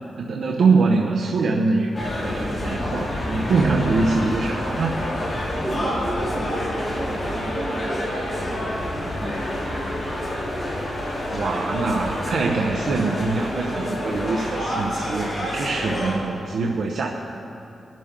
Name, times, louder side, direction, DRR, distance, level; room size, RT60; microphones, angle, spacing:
voice 1, 0.2-5.1 11.3-17.1, right 4 dB, 80° right, -1 dB, 0.8 m, -23 dB
sound 1, 1.9-16.1, left 1 dB, 30° left, 3.4 m, -28 dB
voice 2, 5.6-9.6 9.8-10.0 10.2-10.3, right 2 dB, 25° right, -2 dB, 1.3 m, -33 dB
20.0 x 12.0 x 3.8 m, 2.7 s
wide cardioid pair, 135°, 0 cm